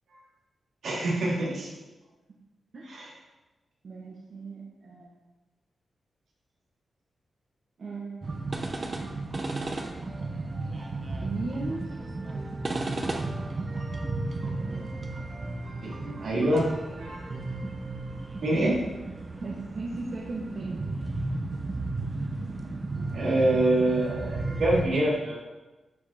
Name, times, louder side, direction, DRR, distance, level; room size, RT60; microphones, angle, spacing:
voice 1, 0.8-1.7 2.9-3.1 15.8-16.6 17.0-17.3 18.4-18.8 23.1-25.4, right 1 dB, 80° right, -5 dB, 3.0 m, -25 dB
voice 2, 3.8-5.1 7.8-8.6 11.2-11.9 14.6-15.1 15.8-16.5 16.9-17.1 19.4-20.8 22.1-22.2, right 3 dB, 55° right, -4 dB, 1.4 m, -38 dB
sound 1, 8.2-24.9, right 2 dB, 30° right, 0.9 m, -34 dB
12.0 x 5.2 x 4.4 m, 1.1 s
wide cardioid pair, 120°, 0 cm